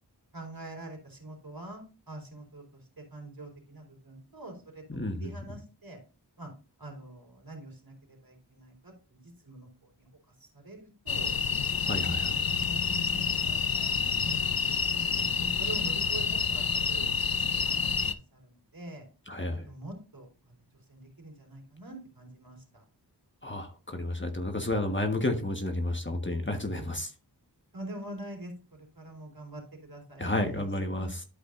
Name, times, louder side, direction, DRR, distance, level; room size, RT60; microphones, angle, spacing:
voice 1, 0.3-2.8 3.1-4.8 5.2-6.0 6.4-6.5 6.8-9.7 10.0-10.1 10.4-11.4 12.0-12.3 12.6-14.4 14.6-15.1 15.4-16.3 16.5-19.1 19.5-20.6 20.9-22.8 27.7-31.1, right 1 dB, 60° right, 1 dB, 3.7 m, -45 dB
voice 2, 4.9-5.3 11.8-12.3 19.3-19.6 23.4-27.1 30.2-31.2, left 1 dB, 30° left, 4 dB, 1.4 m, -31 dB
sound 1, 11.1-18.1, left 5 dB, 60° left, 0.8 m, -28 dB
12.0 x 5.2 x 2.6 m, 0.32 s
wide cardioid pair, 45°, 41 cm